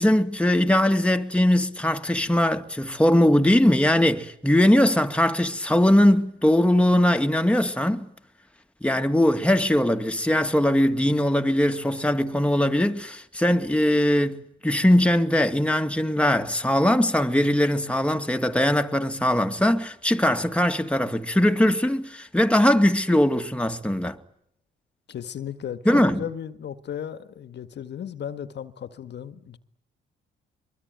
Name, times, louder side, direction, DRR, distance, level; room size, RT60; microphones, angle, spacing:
voice 1, 0.0-8.1 8.8-24.2 25.9-26.2, left 1 dB, 5° left, 2.4 m, -21 dB
voice 2, 25.1-29.6, left 9 dB, 60° left, 1.8 m, -35 dB
23.5 x 23.5 x 9.4 m
cardioid pair, 90°, 20 cm